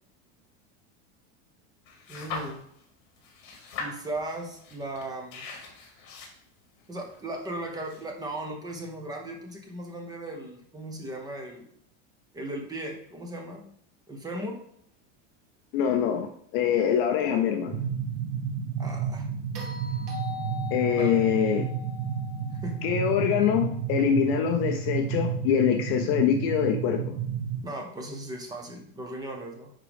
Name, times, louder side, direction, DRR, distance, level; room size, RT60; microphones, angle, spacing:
sound 1, 1.9-2.8 3.2-8.3, left 4 dB, 50° left, 2.4 m, -41 dB
voice 1, 2.1-2.6 3.8-5.4 6.9-11.6 12.3-13.7 14.1-14.6 18.8-19.3 21.0-21.2 22.6-22.8 27.6-29.7, right 1 dB, 10° right, 2 dB, 0.7 m, -37 dB
voice 2, 15.7-17.8 20.7-21.7 22.8-27.2, left 8 dB, 35° left, 5 dB, 0.5 m, -24 dB
sound 2, 17.7-27.6, right 7 dB, 50° right, 0.9 m, -31 dB
sound 3, 19.5-23.8 26.1-26.2, left 6 dB, 70° right, 2.0 m, -42 dB
9.6 x 3.8 x 3.4 m, 0.69 s
supercardioid pair, 165°, 37 cm